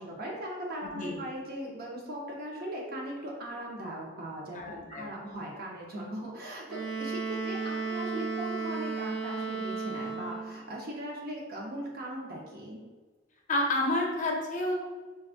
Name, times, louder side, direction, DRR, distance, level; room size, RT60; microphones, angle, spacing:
voice 1, 0.0-4.6 4.9-12.8, right 1 dB, 50° right, -2 dB, 0.8 m, -39 dB
voice 2, 0.8-1.2 4.5-5.1 13.5-14.7, left 1 dB, 40° left, -1 dB, 0.6 m, -30 dB
Wind instrument woodwind instrument, 6.7-10.6, right 4 dB, ahead, 1.3 m, -34 dB
4.8 x 2.3 x 2.5 m, 1.3 s
head